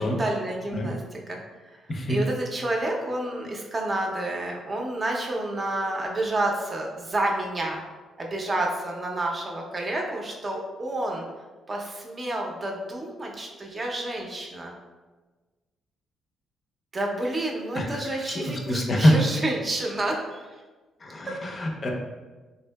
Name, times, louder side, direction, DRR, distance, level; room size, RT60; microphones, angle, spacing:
voice 1, 0.0-1.4 1.9-7.8 8.2-11.2 11.7-14.7 16.9-20.6 21.3-21.4, right 1 dB, 30° right, 0 dB, 0.6 m, -29 dB
voice 2, 18.4-19.1 21.0-21.9, left 1 dB, 40° left, 1 dB, 0.6 m, -24 dB
3.7 x 2.7 x 2.2 m, 1.3 s
cardioid pair, 90°, 0 cm